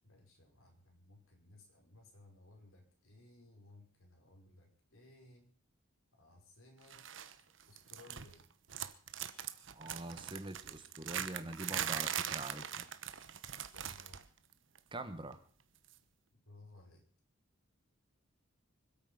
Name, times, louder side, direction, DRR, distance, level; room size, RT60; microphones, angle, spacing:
voice 1, 0.0-5.5 6.2-7.1 7.7-8.5 13.7-14.2 16.3-17.0, left 2 dB, 80° left, 2 dB, 5.6 m, -60 dB
sound 1, 6.9-7.3 7.6-8.4 8.7-14.3 14.5-14.8 15.9-16.0, right 9 dB, 60° right, 1.1 m, -41 dB
voice 2, 9.7-12.9 14.9-15.4, right 2 dB, 25° right, 9 dB, 1.4 m, -44 dB
25.5 x 8.8 x 5.6 m, 0.43 s
head